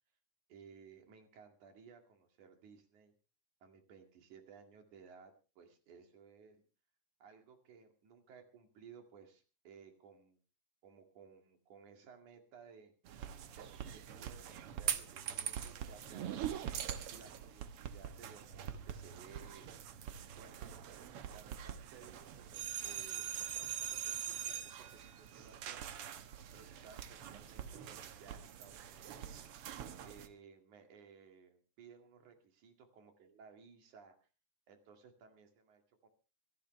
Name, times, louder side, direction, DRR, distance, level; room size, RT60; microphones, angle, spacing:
voice 1, 0.5-3.1 3.6-6.6 7.2-10.4 10.8-12.9 13.6-16.6 17.1-19.7 20.4-20.6 21.3-25.9 26.5-29.3 30.0-34.3 34.7-36.1, right 6 dB, 80° right, 6 dB, 3.6 m, -59 dB
sound 1, 13.1-30.3, right 9 dB, 60° right, 1.7 m, -43 dB
26.0 x 12.5 x 3.2 m, 0.33 s
omnidirectional pair, 3.4 m